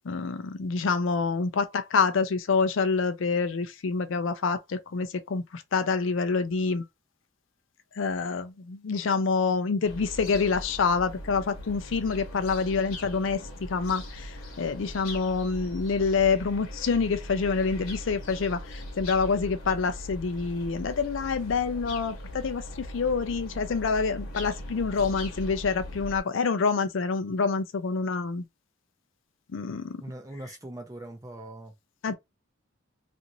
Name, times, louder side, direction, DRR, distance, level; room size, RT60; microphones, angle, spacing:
voice 1, 0.1-6.8 8.0-13.4 13.7-28.4 29.5-30.0 32.0-32.1, left 4 dB, 65° left, 0.4 m, -27 dB
sound 1, 9.8-26.2, left 1 dB, 90° left, 1.0 m, -40 dB
voice 2, 30.0-31.7 32.1-32.2, right 1 dB, 15° right, 0.6 m, -41 dB
2.6 x 2.5 x 2.9 m
head